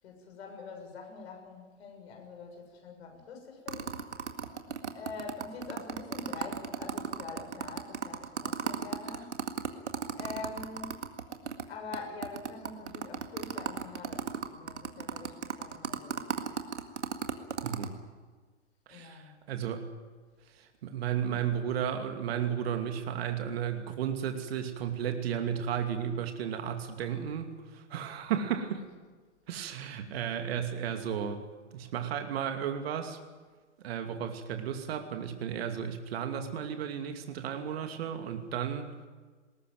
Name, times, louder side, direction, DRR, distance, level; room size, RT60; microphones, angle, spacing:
voice 1, 0.0-4.1 4.9-9.4 10.1-11.0 11.7-16.3 18.9-19.4, left 4 dB, 60° left, 3 dB, 7.0 m, -44 dB
sound 1, 3.7-11.6 11.9-12.0 12.2-17.9, right 7 dB, 75° right, 2.0 m, -35 dB
voice 2, 17.6-18.0 18.9-19.8 20.5-28.8 29.5-31.4 31.7-33.2 33.8-38.9, right 8 dB, 55° right, 5 dB, 2.6 m, -34 dB
21.0 x 18.5 x 9.1 m, 1.4 s
figure-of-eight pair, 105°, 36 cm